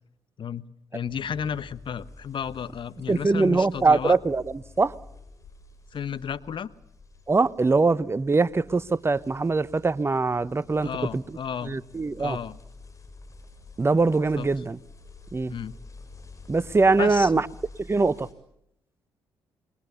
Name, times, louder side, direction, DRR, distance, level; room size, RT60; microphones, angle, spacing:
voice 1, 0.9-4.2 5.9-6.7 10.8-11.8 12.2-12.6 14.4-14.5 15.5-15.8 17.0-17.4, left 7 dB, 50° left, 1.2 m, -32 dB
sound 1, 1.1-18.3, left 3 dB, 30° left, 7.0 m, -49 dB
voice 2, 3.1-5.0 7.3-11.2 11.6-12.4 13.8-14.8 15.3-15.5 16.5-17.5 17.9-18.3, right 3 dB, 25° right, 0.9 m, -22 dB
27.5 x 22.0 x 7.0 m
hypercardioid pair, 50°, 10 cm